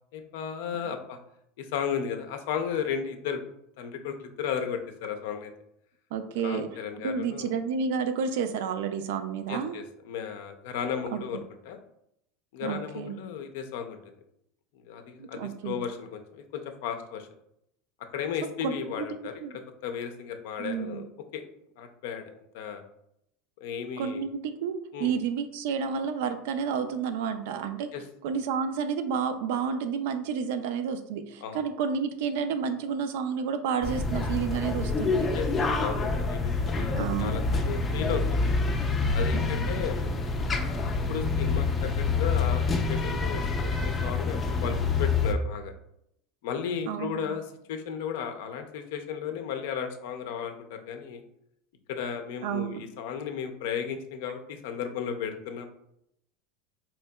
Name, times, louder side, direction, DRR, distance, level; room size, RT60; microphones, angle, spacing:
voice 1, 0.1-1.2 1.6-3.4 3.8-5.5 6.4-7.5 9.5-11.8 12.5-14.2 14.7-17.3 18.1-19.3 19.8-21.0 21.3-21.4 21.8-22.8 23.6-24.3 24.9-25.1 27.9-28.0 31.4-31.6 35.3-38.5 39.1-40.0 40.6-45.7 46.4-47.4 47.7-51.2 51.9-55.7, left 7 dB, 75° left, 6 dB, 0.5 m, -34 dB
voice 2, 6.1-6.7 7.0-9.7 11.1-11.2 12.6-13.1 15.2-15.8 18.6-19.1 19.4-19.5 20.6-21.0 24.0-27.9 28.2-35.3 36.9-37.5 39.3-39.7 46.9-47.3 52.4-52.8, right 6 dB, 75° right, 9 dB, 0.4 m, -30 dB
sound 1, 33.8-45.3, left 3 dB, 25° left, 0.5 m, -27 dB
4.3 x 2.7 x 2.2 m, 0.76 s
supercardioid pair, 115°, 0 cm